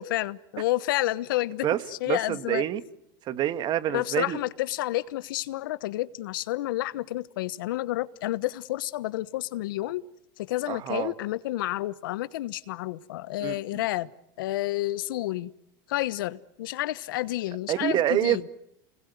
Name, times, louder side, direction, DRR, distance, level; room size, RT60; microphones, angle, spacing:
voice 1, 0.0-2.6 3.9-10.0 10.4-14.1 14.4-15.5 15.9-18.4, left 16 dB, 75° left, 1.1 m, -30 dB
voice 2, 2.1-2.8 3.3-4.4 10.7-11.1 13.4-13.8 17.7-18.5, right 12 dB, 40° right, 1.6 m, -27 dB
29.5 x 21.0 x 9.4 m
supercardioid pair, 115°, 11 cm